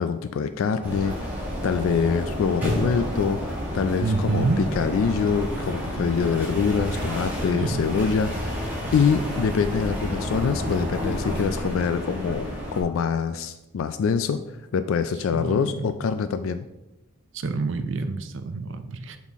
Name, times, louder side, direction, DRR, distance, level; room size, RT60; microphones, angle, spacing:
voice 1, 0.0-1.3 1.6-16.7, left 6 dB, 75° left, 11 dB, 0.3 m, -25 dB
sound 1, 0.8-12.8, equal, 10° right, 1.6 m, -30 dB
voice 2, 4.0-4.6 7.5-7.8 15.3-16.0 17.3-19.2, right 3 dB, 65° right, 8 dB, 0.5 m, -27 dB
7.2 x 4.1 x 3.5 m, 0.95 s
head